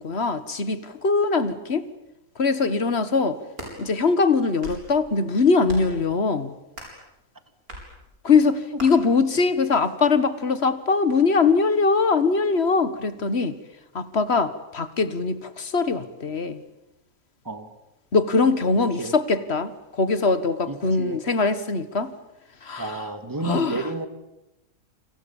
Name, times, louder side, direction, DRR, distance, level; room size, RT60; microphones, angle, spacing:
voice 1, 0.0-1.9 2.4-3.4 3.8-6.5 8.2-13.6 14.0-16.6 18.1-22.1 22.6-23.0 23.4-23.8, left 4 dB, 45° left, 13 dB, 1.7 m, -22 dB
sound 1, 3.3-3.8 4.4-4.9 5.6-6.0 6.7-7.0 7.7-7.9 8.8-8.9, right 1 dB, 85° right, 8.5 m, -38 dB
voice 2, 20.7-21.2 22.8-24.1, right 3 dB, 15° right, 9 dB, 2.1 m, -31 dB
28.5 x 27.0 x 7.2 m, 0.94 s
omnidirectional pair, 1.5 m